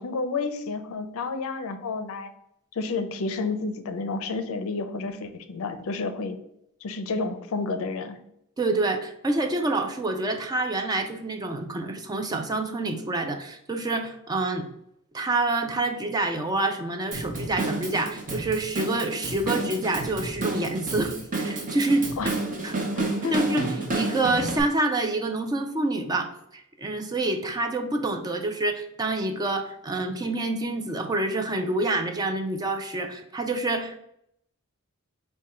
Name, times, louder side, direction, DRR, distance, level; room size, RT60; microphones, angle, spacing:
voice 1, 0.0-2.3 2.7-6.4 6.8-8.2 22.2-22.3 23.0-23.4, left 4 dB, 65° left, 8 dB, 0.5 m, -30 dB
voice 2, 8.6-14.7 15.1-22.3 22.6-22.8 23.2-23.6 23.9-34.0, right 2 dB, 15° right, 5 dB, 0.4 m, -27 dB
Drum kit / Drum, 17.1-24.6, right 2 dB, 35° right, 0.7 m, -30 dB
4.7 x 2.2 x 4.2 m, 0.76 s
head